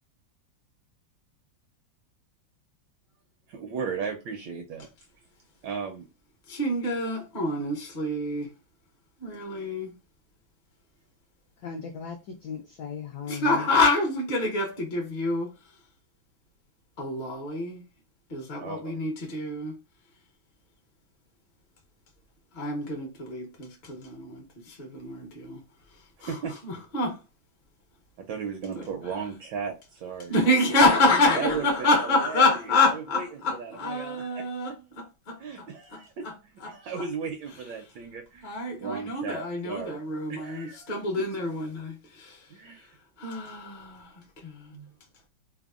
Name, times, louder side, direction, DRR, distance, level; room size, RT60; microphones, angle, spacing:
voice 1, 3.5-4.9 5.6-6.1 18.6-19.0 26.2-26.6 28.2-30.4 31.3-34.8 35.4-36.3 36.6-40.0 40.3-41.0 42.5-43.0 44.7-44.9, right 6 dB, 75° right, 1.1 m, -36 dB
voice 2, 6.5-8.5 9.2-9.9 13.3-15.5 17.0-17.8 18.3-19.7 22.5-25.6 26.2-26.4 26.6-27.2 28.7-28.9 30.3-36.3 36.6-36.7 37.0-37.1 38.4-42.5 43.2-44.7, left 2 dB, 45° left, 0.5 m, -27 dB
voice 3, 11.6-13.7, left 6 dB, 75° left, 0.9 m, -37 dB
3.4 x 2.0 x 2.3 m
omnidirectional pair, 2.2 m